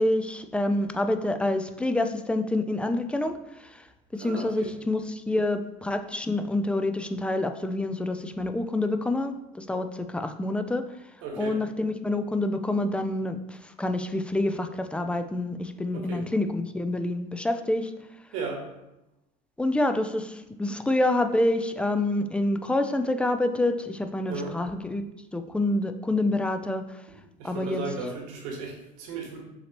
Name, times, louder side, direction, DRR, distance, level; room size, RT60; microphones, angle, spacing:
voice 1, 0.0-3.4 3.6-3.8 4.1-10.8 11.4-17.9 19.6-25.0 25.3-26.8 27.4-27.8, left 1 dB, 5° left, 8 dB, 0.3 m, -27 dB
voice 2, 4.2-4.7 11.2-11.6 15.9-16.3 18.3-18.7 24.3-24.6 27.4-29.4, right 4 dB, 75° right, 0 dB, 1.4 m, -35 dB
6.5 x 2.8 x 2.9 m, 0.91 s
supercardioid pair, 95°, 21 cm